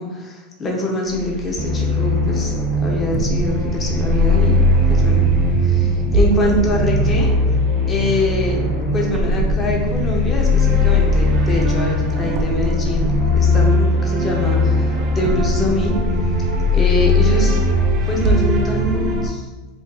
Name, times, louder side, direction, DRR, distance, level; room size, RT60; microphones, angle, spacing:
voice 1, 0.0-4.6 4.9-5.2 5.6-7.3 7.9-8.6 8.9-15.9 16.7-17.6 18.1-19.5, left 1 dB, 20° left, -1 dB, 0.5 m, -24 dB
sound 1, 1.1-18.4, left 6 dB, 35° left, 1.2 m, -23 dB
sound 2, 1.6-19.3, right 1 dB, 35° right, 0.4 m, -20 dB
2.6 x 2.5 x 3.8 m, 1.2 s
supercardioid pair, 150°, 0 cm